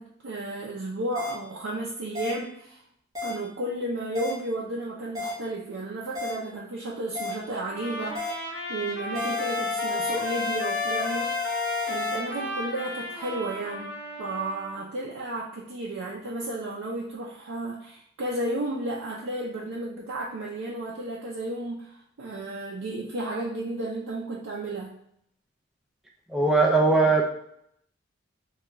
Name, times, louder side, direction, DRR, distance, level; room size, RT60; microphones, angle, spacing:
voice 1, 0.0-2.8 3.2-8.3 8.7-11.3 11.9-25.0, right 1 dB, 75° right, -3 dB, 0.5 m, -33 dB
sound 1, 1.2-1.3 2.2-2.3 3.2-3.3 4.2-4.3 5.2-5.3 6.2-6.3 7.2-7.3 8.2-8.3 9.2-12.2, left 6 dB, 20° right, 1.0 m, -31 dB
Trumpet, 7.6-14.8, left 1 dB, 55° left, 0.9 m, -34 dB
voice 2, 26.3-27.2, right 3 dB, ahead, -2 dB, 0.4 m, -20 dB
3.5 x 2.2 x 2.9 m, 0.73 s
head